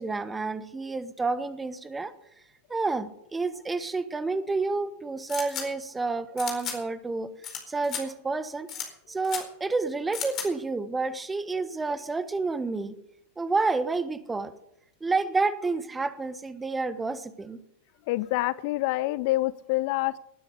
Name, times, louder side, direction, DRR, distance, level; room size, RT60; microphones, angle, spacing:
voice 1, 0.0-2.1 2.7-7.3 7.7-8.7 9.1-12.9 13.4-14.5 15.0-17.6, right 3 dB, 10° right, 14 dB, 1.2 m, -29 dB
sound 1, 5.3-5.6 6.4-6.8 7.4-7.6 7.8-8.0 8.7-8.9 9.2-9.4 10.1-10.5, left 7 dB, 30° left, 4.4 m, -34 dB
voice 2, 18.1-20.2, left 18 dB, 45° left, 18 dB, 0.5 m, -27 dB
19.5 x 9.7 x 6.7 m, 0.79 s
figure-of-eight pair, 90°, 0 cm